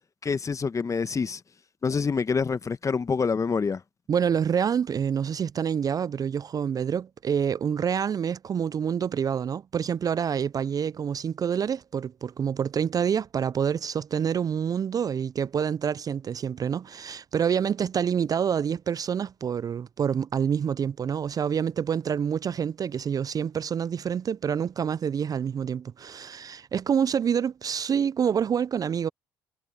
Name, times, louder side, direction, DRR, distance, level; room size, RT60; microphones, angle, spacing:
voice 1, 0.2-1.4 1.8-3.8, left 5 dB, 30° left, 1.2 m, -26 dB
voice 2, 4.1-29.1, right 7 dB, 35° right, 0.4 m, -27 dB
hypercardioid pair, 60°, 10 cm